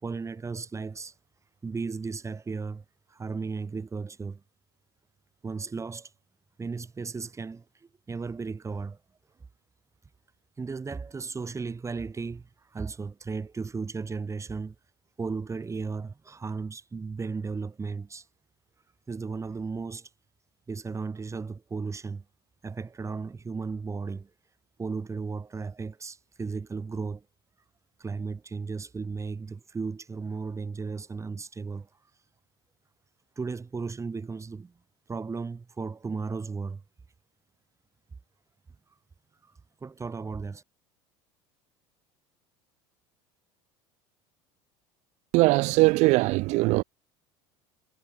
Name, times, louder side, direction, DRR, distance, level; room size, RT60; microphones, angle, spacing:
voice 1, 0.0-1.1 1.6-2.8 3.1-4.4 5.4-6.1 6.6-7.6 8.1-9.0 10.6-14.8 15.2-18.3 19.1-20.1 20.7-22.2 22.6-24.3 24.8-27.2 28.0-31.9 33.4-34.7 35.1-36.8 39.4-39.5 39.8-40.6, right 4 dB, 20° right, 3.7 m, -35 dB
voice 2, 45.3-46.8, right 22 dB, 60° right, 0.5 m, -21 dB
hypercardioid pair, 85°, 13 cm